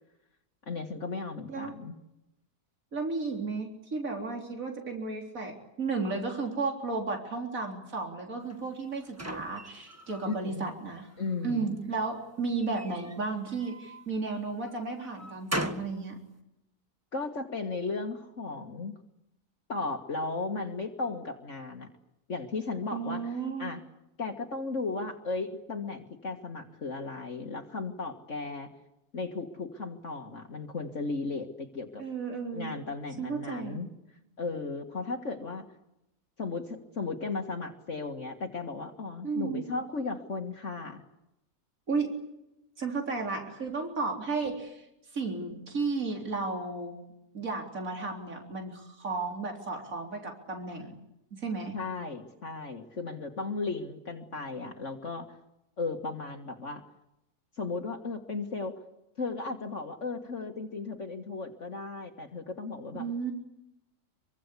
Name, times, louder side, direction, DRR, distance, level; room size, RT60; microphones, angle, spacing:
voice 1, 0.7-1.9 10.3-10.7 11.2-11.7 17.1-18.9 19.7-21.9 22.3-23.8 24.2-28.7 29.1-32.0 32.5-33.9 34.4-35.7 36.4-41.0 51.7-55.4 55.8-56.8 57.6-58.7 59.2-63.1, left 3 dB, 50° left, 4 dB, 2.1 m, -35 dB
voice 2, 2.9-11.1 11.4-16.2 22.9-23.7 32.0-32.7 33.2-33.8 39.2-39.7 41.9-42.1 42.8-44.9 45.1-47.0 47.3-51.0 51.3-51.7 62.9-63.3, right 4 dB, 60° right, 2 dB, 4.2 m, -33 dB
sound 1, 8.5-10.4 10.9-11.6 12.6-14.1 14.7-16.0, right 1 dB, 10° right, 1.6 m, -39 dB
25.5 x 24.5 x 8.4 m, 0.87 s
omnidirectional pair, 1.6 m